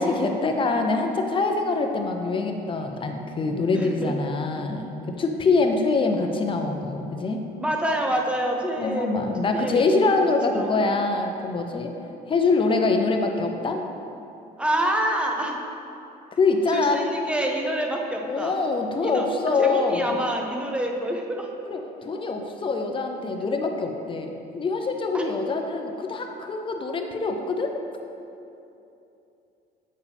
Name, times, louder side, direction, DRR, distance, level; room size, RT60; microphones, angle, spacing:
voice 1, 0.0-7.4 8.8-11.9 12.3-13.8 16.3-17.0 18.3-20.2 21.7-27.7, left 3 dB, 30° left, 4 dB, 0.6 m, -24 dB
voice 2, 3.7-4.1 7.6-9.8 10.5-10.9 14.6-15.6 16.7-18.6 19.0-19.2 19.6-21.5 25.1-25.2, right 1 dB, 5° right, 1 dB, 0.8 m, -27 dB
8.2 x 4.7 x 3.5 m, 2.8 s
cardioid pair, 110°, 17 cm